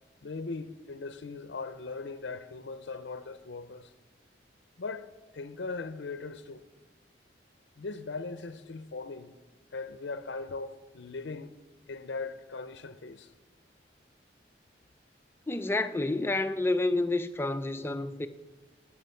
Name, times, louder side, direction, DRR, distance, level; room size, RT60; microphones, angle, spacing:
voice 1, 0.2-3.9 4.8-6.6 7.8-9.3 9.7-11.6 11.9-13.3, left 3 dB, 75° left, 0.6 m, -39 dB
voice 2, 15.5-18.3, left 2 dB, 15° left, 0.5 m, -29 dB
12.0 x 6.0 x 9.3 m
head